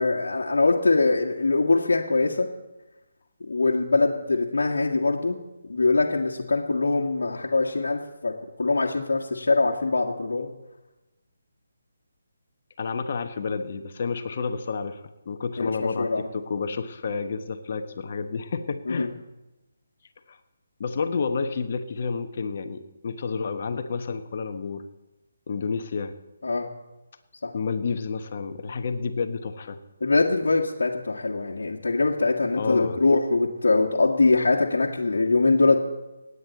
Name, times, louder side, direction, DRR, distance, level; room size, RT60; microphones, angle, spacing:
voice 1, 0.0-2.5 3.5-5.4 5.7-10.5 15.6-16.3 18.9-19.1 26.4-26.7 27.4-27.5 30.0-35.8, left 3 dB, 65° left, -3 dB, 1.7 m, -23 dB
voice 2, 12.8-19.1 20.3-20.4 20.8-24.9 25.5-26.1 27.5-29.8 32.5-33.0, left 5 dB, 45° left, 8 dB, 1.2 m, -30 dB
26.0 x 9.7 x 4.1 m, 1.0 s
figure-of-eight pair, 145°, 0 cm